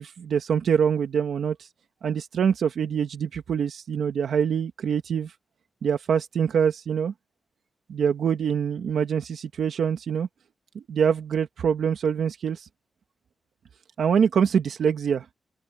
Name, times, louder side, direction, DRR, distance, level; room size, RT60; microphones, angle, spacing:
voice 1, 0.0-1.7 2.0-5.3 5.8-7.1 7.9-10.3 10.7-12.7 14.0-15.2, right 7 dB, 75° right, 1.5 m, -24 dB
open air
wide cardioid pair, 135°, 0 cm